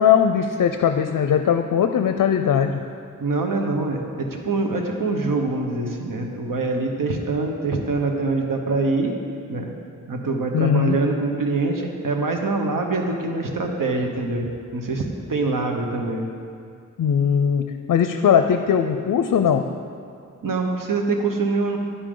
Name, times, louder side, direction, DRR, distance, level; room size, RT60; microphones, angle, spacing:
voice 1, 0.0-2.8 10.5-11.0 17.0-19.6, left 8 dB, 75° left, 7 dB, 0.5 m, -19 dB
voice 2, 3.2-9.1 9.5-9.7 10.1-16.2 20.4-21.8, right 3 dB, 80° right, 2 dB, 1.1 m, -24 dB
10.0 x 9.9 x 3.8 m, 2.3 s
wide cardioid pair, 105°, 32 cm